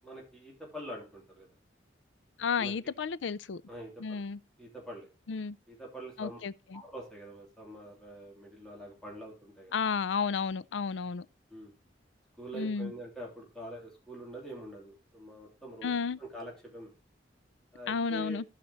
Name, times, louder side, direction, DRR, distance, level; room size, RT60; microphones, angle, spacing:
voice 1, 0.0-1.5 2.6-2.7 3.7-4.2 4.6-5.1 5.7-6.4 6.7-9.8 11.5-11.7 12.4-15.9 16.2-16.9 17.7-18.4, right 1 dB, 5° left, 3.4 m, -45 dB
voice 2, 2.4-3.6 4.0-4.4 5.3-5.6 6.2-6.8 9.7-11.3 12.5-12.9 15.8-16.2 17.9-18.4, left 5 dB, 85° left, 0.5 m, -32 dB
15.5 x 5.9 x 3.1 m
head